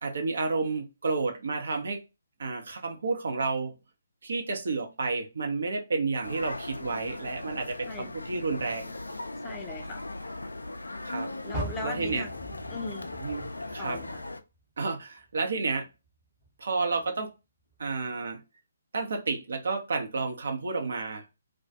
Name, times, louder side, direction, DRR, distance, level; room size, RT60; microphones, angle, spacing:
voice 1, 0.0-2.0 2.4-3.7 4.2-8.9 11.0-11.3 11.8-12.3 13.2-14.0 14.8-15.9 16.6-17.3 17.8-18.4 18.9-21.2, right 4 dB, 60° right, 0.7 m, -31 dB
sound 1, 6.2-14.4, left 2 dB, 80° left, 0.3 m, -38 dB
voice 2, 9.4-10.0 11.4-12.3 12.7-13.1 13.8-14.2, left 2 dB, 15° left, 0.5 m, -38 dB
Car, 11.5-14.8 15.2-16.5 17.0-17.1 17.7-17.8, right 2 dB, 25° right, 0.9 m, -41 dB
2.3 x 2.2 x 2.7 m
figure-of-eight pair, 135°, 0 cm